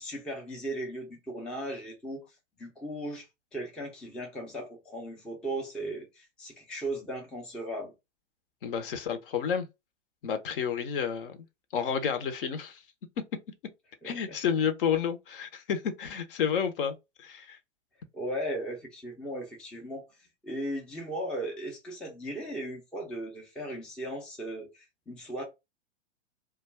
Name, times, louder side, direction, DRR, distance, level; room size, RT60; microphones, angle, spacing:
voice 1, 0.0-2.2 2.6-7.9 14.0-14.4 18.1-20.1 20.4-25.4, right 1 dB, 5° left, 0.4 m, -37 dB
voice 2, 8.6-9.7 10.2-11.4 11.7-12.8 14.0-17.6, left 7 dB, 50° left, 0.7 m, -30 dB
2.3 x 2.3 x 3.1 m
hypercardioid pair, 115°, 35 cm